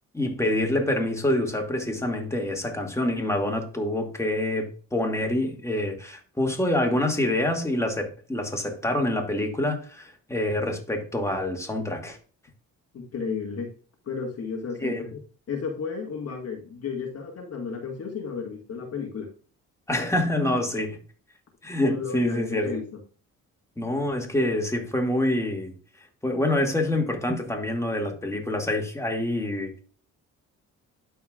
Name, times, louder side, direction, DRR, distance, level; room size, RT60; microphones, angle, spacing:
voice 1, 0.1-12.2 14.8-15.0 19.9-21.0 21.6-22.8 23.8-25.7 26.2-29.8, left 1 dB, 10° left, 2.3 m, -26 dB
voice 2, 12.9-13.7 14.0-15.2 15.5-19.3 21.9-23.0, left 5 dB, 55° left, 1.8 m, -33 dB
12.0 x 4.7 x 2.4 m
cardioid pair, 90°, 30 cm